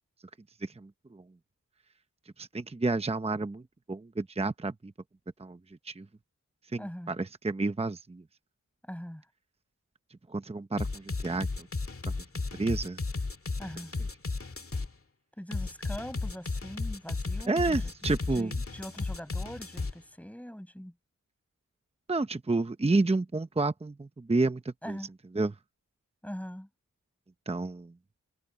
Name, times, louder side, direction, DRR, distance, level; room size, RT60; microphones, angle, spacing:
voice 1, 0.6-1.2 2.4-3.6 3.9-4.9 5.4-5.6 5.9-6.1 6.7-8.2 10.3-11.7 12.6-13.0 17.5-18.5 22.1-25.0 25.3-25.5 27.5-27.9, right 3 dB, 20° right, 0.8 m, -30 dB
voice 2, 6.8-7.1 8.8-9.2 13.6-13.9 15.4-17.9 18.3-20.9 24.8-25.1 26.2-26.7, equal, 5° left, 7.8 m, -42 dB
sound 1, 10.8-14.9 15.5-19.9, left 3 dB, 45° left, 2.0 m, -34 dB
wide cardioid pair, 65°, 32 cm